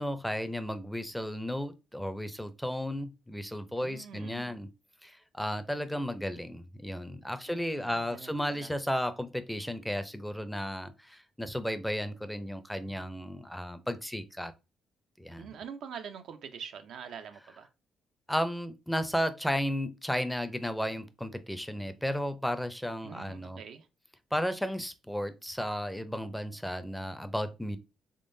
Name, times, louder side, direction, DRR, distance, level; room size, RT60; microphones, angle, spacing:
voice 1, 0.0-4.7 5.0-14.5 15.2-15.5 18.3-23.6 24.3-27.8, equal, 5° left, 0.5 m, -34 dB
voice 2, 3.8-4.6 7.5-8.7 15.4-17.7 23.0-23.9, right 7 dB, 75° right, 0.5 m, -45 dB
3.7 x 3.3 x 2.6 m
cardioid pair, 90°, 0 cm